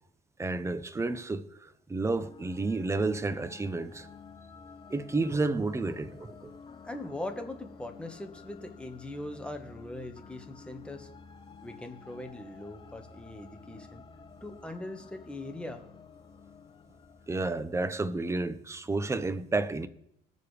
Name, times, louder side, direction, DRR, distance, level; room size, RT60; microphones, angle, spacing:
voice 1, 0.4-4.1 4.9-6.5 17.3-19.9, right 3 dB, 15° right, 0.6 m, -31 dB
sound 1, 2.2-18.4, left 5 dB, 30° left, 0.7 m, -51 dB
voice 2, 6.8-11.1 11.6-14.0 14.4-15.8, left 1 dB, 5° left, 1.3 m, -41 dB
20.5 x 6.8 x 3.3 m
cardioid pair, 110°, 17 cm